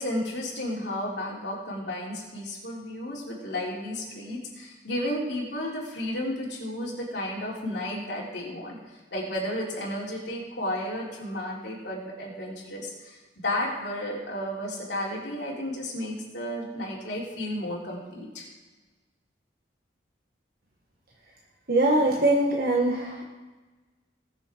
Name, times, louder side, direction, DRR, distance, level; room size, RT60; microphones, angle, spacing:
voice 1, 0.0-8.8 9.1-18.4, left 1 dB, 60° left, -3 dB, 3.4 m, -33 dB
voice 2, 21.7-23.2, right 2 dB, 50° right, -1 dB, 1.4 m, -22 dB
19.5 x 6.9 x 4.5 m, 1.3 s
head